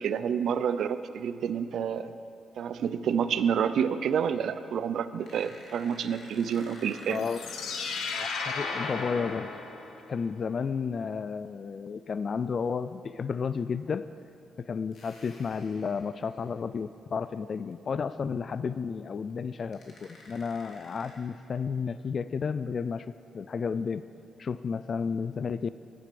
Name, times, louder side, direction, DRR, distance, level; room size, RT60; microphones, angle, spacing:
voice 1, 0.0-2.1 2.5-7.2, right 7 dB, 70° right, 12 dB, 0.5 m, -29 dB
sound 1, 5.2-8.5 10.7-10.9 12.5-12.7 13.6-13.7 14.9-16.7 17.2-17.4 17.7-17.8 19.3-19.4 19.7-21.1, left 2 dB, 65° left, 2.8 m, -50 dB
sound 2, 7.1-10.2, left 4 dB, 85° left, 1.1 m, -35 dB
voice 2, 7.1-7.4 8.1-9.5 10.1-14.1 14.6-23.1 23.3-24.1 24.4-25.7, left 5 dB, 45° left, 14 dB, 0.3 m, -32 dB
11.5 x 9.8 x 6.8 m, 2.5 s
cardioid pair, 110°, 0 cm